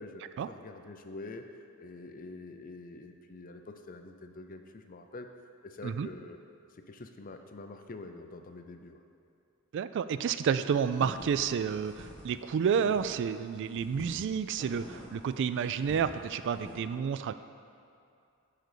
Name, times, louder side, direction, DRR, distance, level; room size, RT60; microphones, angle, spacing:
voice 1, 0.0-1.4 1.8-5.3 5.6-6.4 6.7-9.0, left 2 dB, 40° left, 6 dB, 0.5 m, -46 dB
voice 2, 9.7-17.3, right 7 dB, 55° right, 12 dB, 0.3 m, -30 dB
sound 1, 10.7-13.3 13.7-16.8, equal, 5° left, 1.6 m, -47 dB
11.0 x 4.0 x 6.7 m, 2.5 s
head